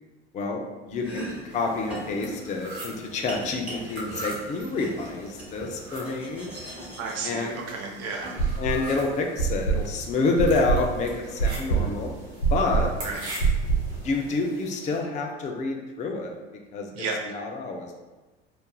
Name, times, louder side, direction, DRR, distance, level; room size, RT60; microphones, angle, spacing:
voice 1, 0.3-6.5 7.2-7.6 8.6-12.1 12.5-12.9 14.0-16.3 16.7-16.9 17.2-18.0, left 3 dB, 25° left, 2 dB, 0.3 m, -28 dB
Domestic sounds home sounds, 0.9-9.1, right 1 dB, 5° right, 1.1 m, -41 dB
sound 1, 1.5-15.0, right 1 dB, 85° right, 0.8 m, -42 dB
voice 2, 7.0-8.6 13.0-13.2 16.9-17.2, right 4 dB, 50° right, 1 dB, 0.6 m, -33 dB
sound 2, 8.4-9.0 9.4-14.0, right 5 dB, 90° left, 0.5 m, -25 dB
2.7 x 2.4 x 2.2 m, 1.2 s
hypercardioid pair, 75°, 32 cm